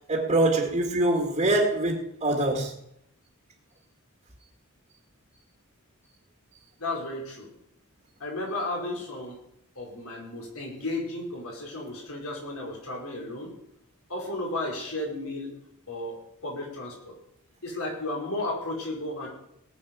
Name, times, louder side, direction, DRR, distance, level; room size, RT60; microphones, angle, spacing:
voice 1, 0.1-2.7, right 2 dB, 35° right, 1.8 m, -24 dB
voice 2, 6.8-7.5 8.2-9.4 9.7-13.5 14.1-15.5 15.9-16.2 16.4-17.1 17.6-19.3, left 2 dB, 80° left, 5.0 m, -33 dB
18.0 x 8.2 x 6.2 m
head